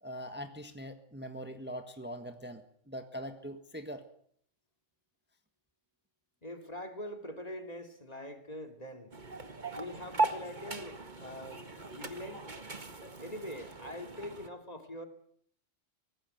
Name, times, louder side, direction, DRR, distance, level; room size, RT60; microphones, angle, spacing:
voice 1, 0.0-2.6 2.9-4.0, equal, 10° right, 7 dB, 1.6 m, -42 dB
voice 2, 6.4-9.2 9.7-11.7 11.9-12.5 13.2-15.1, left 1 dB, 30° left, 5 dB, 2.9 m, -43 dB
sound 1, 9.1-14.5, right 3 dB, 40° right, 1.9 m, -38 dB
24.0 x 18.5 x 8.1 m, 0.64 s
omnidirectional pair, 1.3 m